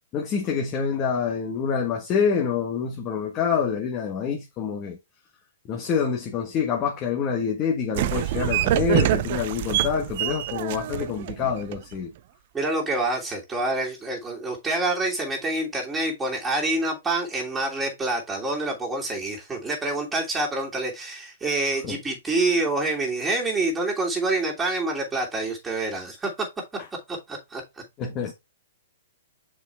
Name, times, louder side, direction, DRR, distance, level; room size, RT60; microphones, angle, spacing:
voice 1, 0.1-5.0 5.6-12.1 21.8-22.0 28.0-28.3, left 6 dB, 30° left, 1.5 m, -26 dB
sound 1, 7.9-11.9, right 13 dB, 50° right, 0.6 m, -25 dB
voice 2, 12.5-26.5 27.1-27.6, right 2 dB, 10° right, 3.0 m, -27 dB
6.9 x 5.0 x 3.5 m
hypercardioid pair, 145°, 0 cm